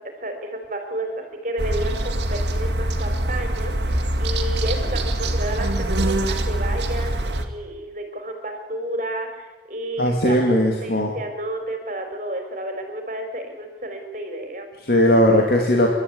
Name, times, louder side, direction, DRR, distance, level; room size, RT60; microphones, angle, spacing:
voice 1, 0.2-14.7, right 1 dB, 45° right, 5 dB, 3.8 m, -31 dB
sound 1, 1.6-7.5, right 1 dB, 85° right, 2.2 m, -24 dB
voice 2, 10.0-11.1 14.8-15.9, equal, 60° left, 0 dB, 2.6 m, -18 dB
27.5 x 12.5 x 9.6 m, 1.2 s
head